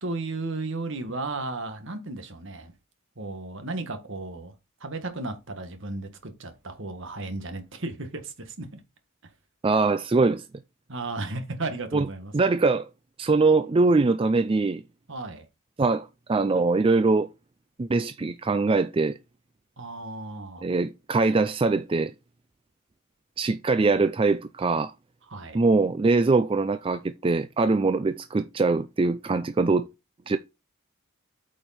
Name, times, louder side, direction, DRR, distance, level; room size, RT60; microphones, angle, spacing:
voice 1, 0.0-2.7 3.1-4.5 4.8-8.8 10.9-12.3 15.1-15.5 19.8-20.7 25.3-25.6, right 2 dB, 60° right, 1.7 m, -34 dB
voice 2, 9.6-10.4 11.9-12.1 12.3-12.9 13.2-14.8 15.8-17.3 17.8-19.2 20.6-22.1 23.4-24.9 25.5-29.9 30.3-30.4, right 3 dB, 25° right, 0.4 m, -22 dB
8.8 x 5.1 x 4.2 m
head